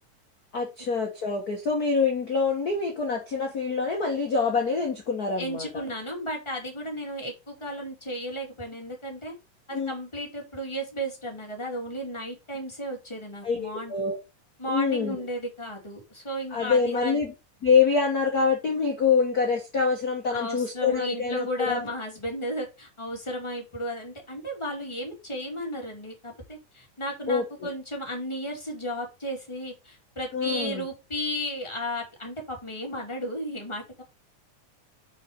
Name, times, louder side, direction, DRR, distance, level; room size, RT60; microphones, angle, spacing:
voice 1, 0.5-5.8 9.7-9.9 13.4-14.2 14.7-15.2 16.5-17.3 17.6-21.8 27.3-27.7 30.3-30.9, left 5 dB, 65° left, 0.9 m, -25 dB
voice 2, 5.4-9.3 9.7-13.9 14.6-17.2 20.3-34.0, equal, 10° left, 2.4 m, -34 dB
6.6 x 5.4 x 5.2 m
omnidirectional pair, 3.8 m